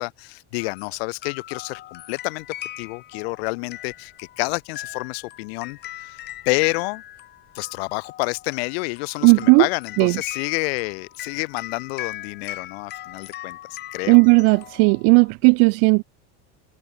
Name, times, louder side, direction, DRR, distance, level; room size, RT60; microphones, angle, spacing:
voice 1, 0.0-2.5 2.8-7.0 7.5-13.6 13.9-14.2, left 28 dB, 70° left, 1.1 m, -29 dB
sound 1, 0.6-15.3, left 14 dB, 30° left, 1.8 m, -39 dB
voice 2, 9.2-9.7 10.0-10.2 14.1-16.0, right 38 dB, 50° right, 0.9 m, -15 dB
cardioid pair, 180°, 32 cm